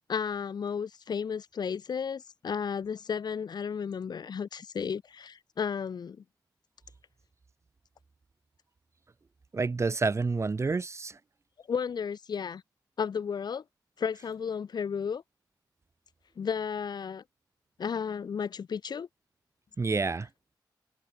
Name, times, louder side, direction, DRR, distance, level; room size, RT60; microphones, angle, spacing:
voice 1, 0.1-6.2 11.7-12.6 13.0-13.6 14.0-15.2 16.4-17.2 17.8-19.1, left 6 dB, 60° left, 1.5 m, -33 dB
voice 2, 9.5-11.2 19.8-20.3, right 4 dB, 35° right, 3.4 m, -28 dB
cardioid pair, 85°, 8 cm